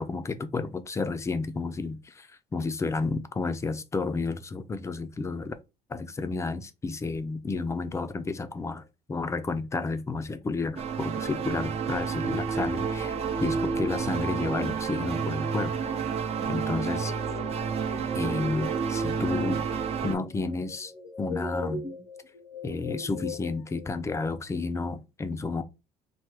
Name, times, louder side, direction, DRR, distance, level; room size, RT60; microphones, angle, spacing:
voice 1, 0.0-5.5 5.9-13.2 13.4-15.8 16.5-17.1 18.1-19.6 20.0-20.9 21.2-21.8 22.6-25.6, left 3 dB, 20° left, 0.4 m, -31 dB
sound 1, 10.8-20.2, right 6 dB, 45° right, 0.5 m, -30 dB
sound 2, 16.5-23.9, left 3 dB, 65° left, 0.7 m, -40 dB
3.3 x 2.2 x 3.0 m
cardioid pair, 100°, 14 cm